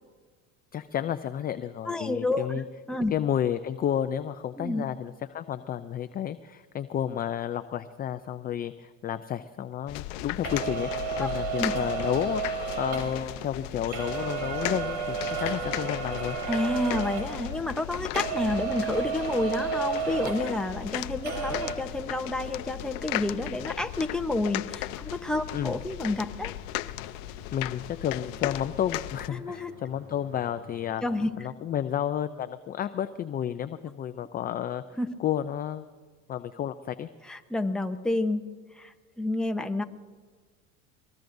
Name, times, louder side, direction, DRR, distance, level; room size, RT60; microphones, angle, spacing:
voice 1, 0.7-2.6 3.1-10.9 11.2-16.4 25.5-25.8 27.5-31.0 31.4-34.8 35.2-35.9 36.3-37.1, left 10 dB, 25° left, 10 dB, 0.4 m, -31 dB
voice 2, 1.9-2.5 2.9-3.1 4.6-4.9 11.2-11.3 11.6-11.7 16.5-26.5 29.3-29.7 31.0-31.3 35.0-35.1 37.3-38.4 38.8-39.8, left 2 dB, ahead, 4 dB, 0.8 m, -29 dB
sound 1, 9.9-29.3, left 17 dB, 80° left, 0.6 m, -36 dB
sound 2, 10.4-17.9 18.1-21.0 21.2-21.7, right 6 dB, 45° right, 3.6 m, -32 dB
sound 3, 18.7-31.3, left 2 dB, 75° right, 6.4 m, -51 dB
24.0 x 20.0 x 2.6 m, 1.5 s
supercardioid pair, 120°, 38 cm